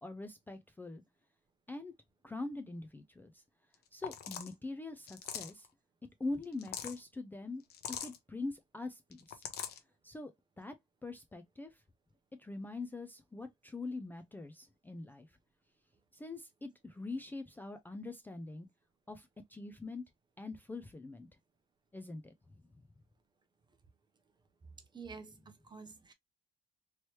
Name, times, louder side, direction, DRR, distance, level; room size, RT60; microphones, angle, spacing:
voice 1, 0.0-1.0 1.7-1.9 2.2-3.4 3.9-5.7 6.2-7.6 7.9-9.5 10.0-10.7 11.0-11.8 12.4-15.4 16.1-18.7 19.1-20.0 20.4-21.3 21.9-22.3 22.8-22.9, left 2 dB, 10° left, 0.4 m, -43 dB
sound 1, 3.7-3.8 4.0-4.5 5.1-5.7 6.4-7.0 7.7-8.2 9.1-9.8, left 9 dB, 70° left, 0.8 m, -42 dB
voice 2, 24.9-26.1, right 5 dB, 25° right, 0.8 m, -49 dB
3.1 x 3.0 x 2.9 m
cardioid pair, 110°, 17 cm